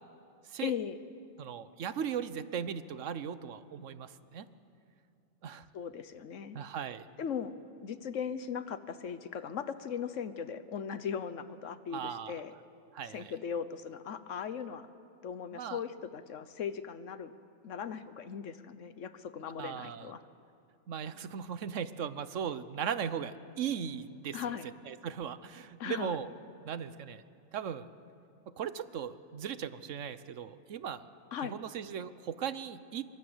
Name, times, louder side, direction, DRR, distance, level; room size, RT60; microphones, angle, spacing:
voice 1, 0.6-1.0 5.7-6.6 7.2-7.5 7.8-12.5 13.1-14.9 15.2-17.3 17.6-20.2 24.3-24.7 25.8-26.2 31.3-31.6, left 7 dB, 90° left, 13 dB, 1.3 m, -38 dB
voice 2, 1.4-4.5 5.4-5.7 6.5-7.0 11.9-12.3 12.9-13.3 15.5-15.8 19.6-20.1 20.9-24.6 24.9-26.3 26.6-27.2 27.5-27.9 28.5-31.0 31.4-33.0, right 8 dB, 90° right, 14 dB, 1.2 m, -38 dB
25.5 x 23.0 x 8.0 m, 2.5 s
omnidirectional pair, 1.2 m